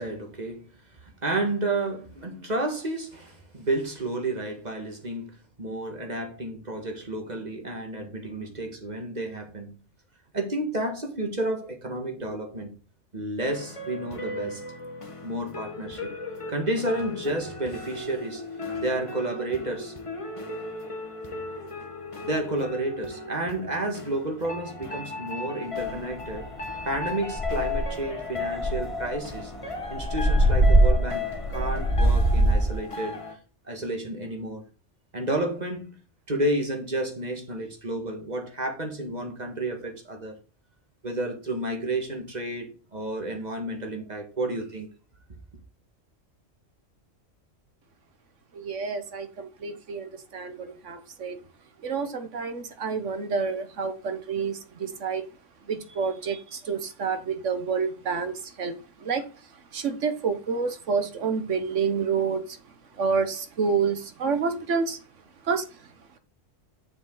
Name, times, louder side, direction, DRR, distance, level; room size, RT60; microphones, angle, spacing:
voice 1, 0.0-9.7 10.3-12.7 13.1-14.6 15.2-16.1 16.5-18.4 18.7-19.9 22.2-26.5 26.8-29.5 29.9-33.2 33.7-34.6 35.1-36.0 36.3-40.4 41.0-44.9, right 1 dB, 35° right, 1.7 m, -31 dB
sound 1, 13.4-33.4, left 3 dB, 25° left, 1.2 m, -36 dB
sound 2, 25.9-26.0 26.4-26.6 27.0-27.1 27.3-28.0 28.6-32.8, right 1 dB, ahead, 0.8 m, -22 dB
voice 2, 48.5-51.4 51.8-55.2 55.7-58.7 59.0-59.2 59.7-62.4 63.0-65.0 65.5-65.6, right 5 dB, 70° right, 1.4 m, -28 dB
7.0 x 6.9 x 3.8 m
omnidirectional pair, 1.3 m